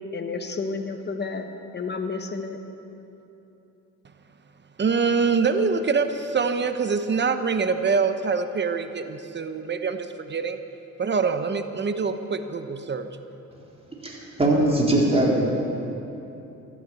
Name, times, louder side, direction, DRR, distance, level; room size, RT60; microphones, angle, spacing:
voice 1, 0.1-1.4 1.7-2.6, left 4 dB, 35° left, 5 dB, 1.6 m, -30 dB
voice 2, 4.8-10.6 11.0-13.1, right 5 dB, 35° right, 9 dB, 1.0 m, -24 dB
voice 3, 14.0-15.4, right 1 dB, 20° right, -3 dB, 3.9 m, -21 dB
14.5 x 12.0 x 8.4 m, 2.9 s
cardioid pair, 90°, 30 cm